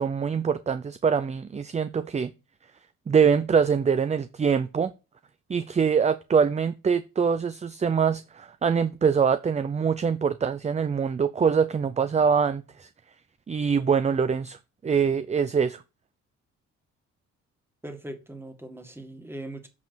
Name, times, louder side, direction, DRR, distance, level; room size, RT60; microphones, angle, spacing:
voice 1, 0.0-2.3 3.1-4.9 5.5-12.9 13.5-14.6 14.8-15.8, right 6 dB, 25° right, 0.5 m, -24 dB
voice 2, 17.8-19.7, right 1 dB, 10° right, 1.9 m, -40 dB
8.0 x 5.2 x 4.6 m
cardioid pair, 90°, 30 cm